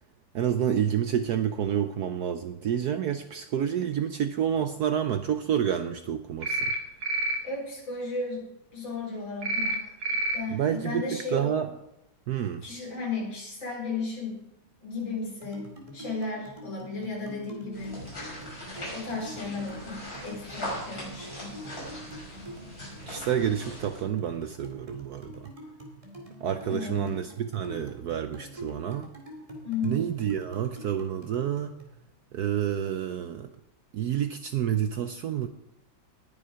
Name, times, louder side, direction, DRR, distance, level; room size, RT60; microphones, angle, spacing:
voice 1, 0.3-6.7 10.5-11.7 12.3-12.6 23.1-25.5 26.4-29.1 29.8-31.7 32.3-33.5 33.9-35.5, right 9 dB, 70° right, 9 dB, 1.0 m, -29 dB
sound 1, 6.4-6.8 7.0-7.4 9.4-9.8 10.0-10.4, right 2 dB, 40° right, 2.0 m, -28 dB
voice 2, 7.4-8.5 8.7-10.0 10.3-11.5 12.6-14.4 14.8-15.6 15.9-18.0 18.8-21.6 26.7-27.1 29.6-30.0, left 3 dB, 70° left, -1 dB, 4.8 m, -34 dB
sound 2, 15.4-31.9, equal, 15° right, 2.5 m, -46 dB
sound 3, 17.7-24.0, equal, 45° left, 6.7 m, -40 dB
19.5 x 7.2 x 5.1 m, 0.85 s
omnidirectional pair, 2.2 m